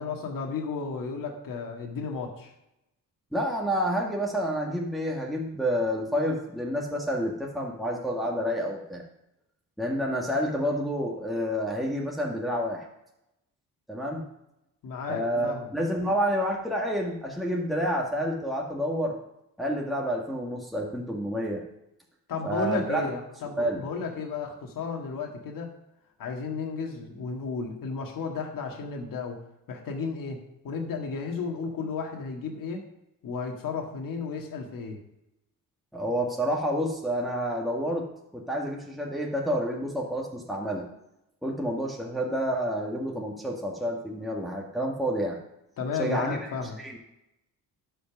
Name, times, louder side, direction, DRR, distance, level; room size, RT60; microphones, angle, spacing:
voice 1, 0.0-2.5 14.8-15.7 22.3-25.7 26.2-29.4 29.7-32.8 33.2-35.0 45.8-46.8, left 5 dB, 60° left, 2 dB, 1.9 m, -33 dB
voice 2, 3.3-9.0 9.8-12.9 13.9-14.2 15.1-19.2 19.6-21.6 22.4-23.0 23.6-23.8 35.9-38.0 38.3-40.8 41.4-45.4 46.0-46.4 46.8-47.0, equal, ahead, -2 dB, 1.9 m, -29 dB
11.5 x 5.3 x 6.0 m, 0.87 s
supercardioid pair, 70°, 37 cm